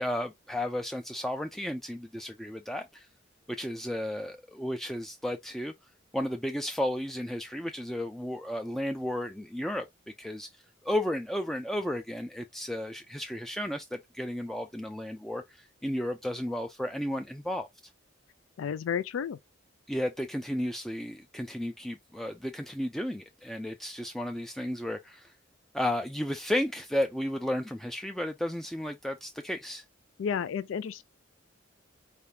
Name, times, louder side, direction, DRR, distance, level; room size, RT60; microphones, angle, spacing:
voice 1, 0.0-3.1 3.6-5.7 6.1-9.9 10.2-17.7 19.9-25.3 25.7-29.8, left 1 dB, ahead, 0.3 m, -33 dB
voice 2, 18.6-19.4 30.2-31.0, left 7 dB, 80° left, 0.3 m, -31 dB
4.7 x 3.3 x 2.7 m
head